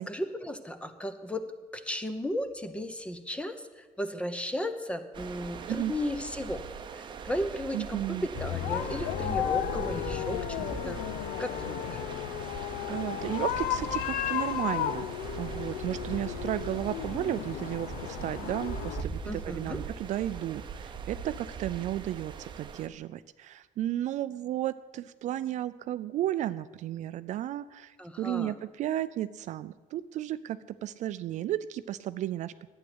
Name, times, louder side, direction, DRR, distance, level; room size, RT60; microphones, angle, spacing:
voice 1, 0.0-1.4 1.7-6.6 7.0-11.0 11.4-12.0 19.3-19.8 28.0-28.5, left 1 dB, 10° left, 10 dB, 0.8 m, -35 dB
sound 1, 5.1-22.9, right 6 dB, 30° right, 0.8 m, -41 dB
voice 2, 7.7-8.3 12.9-15.1 15.3-32.5, right 12 dB, 55° right, 14 dB, 0.4 m, -33 dB
sound 2, 8.4-19.0, left 10 dB, 90° left, 0.6 m, -34 dB
11.5 x 9.1 x 8.0 m, 1.3 s
cardioid pair, 155°, 15 cm